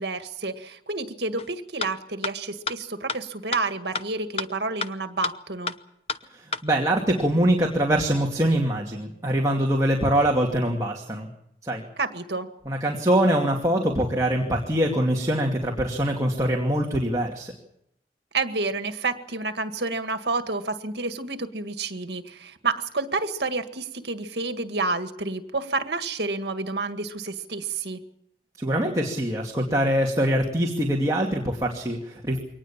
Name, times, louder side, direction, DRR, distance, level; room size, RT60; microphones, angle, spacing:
voice 1, 0.0-5.7 12.0-12.5 18.3-28.0, right 3 dB, 70° right, 9 dB, 1.9 m, -29 dB
sound 1, 1.4-1.5 1.8-1.9 2.2-2.3 2.7-2.8 3.1-3.2 3.5-3.6 3.9-4.0 4.4-4.5 4.8-4.9 5.2-5.3 5.7-5.8 6.1-6.2 6.5-6.6, left 5 dB, 35° left, 0.8 m, -28 dB
voice 2, 6.3-11.3 11.6-11.8 12.7-17.5 28.6-32.4, right 1 dB, 20° right, 0 dB, 2.5 m, -23 dB
23.5 x 19.0 x 7.4 m, 0.75 s
head